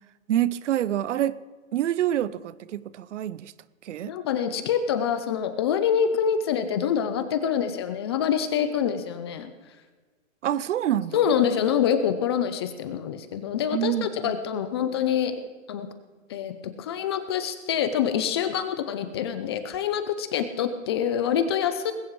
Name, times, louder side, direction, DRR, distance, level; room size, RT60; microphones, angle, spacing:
voice 1, 0.3-1.4 1.7-3.5 3.8-4.1 10.4-11.2 13.7-14.3, right 11 dB, 65° right, 18 dB, 0.7 m, -26 dB
voice 2, 4.1-9.5 11.1-15.4 15.7-15.9 16.3-16.5 16.8-21.9, left 8 dB, 20° left, 10 dB, 0.4 m, -26 dB
20.0 x 17.0 x 3.1 m, 1.4 s
hypercardioid pair, 150°, 39 cm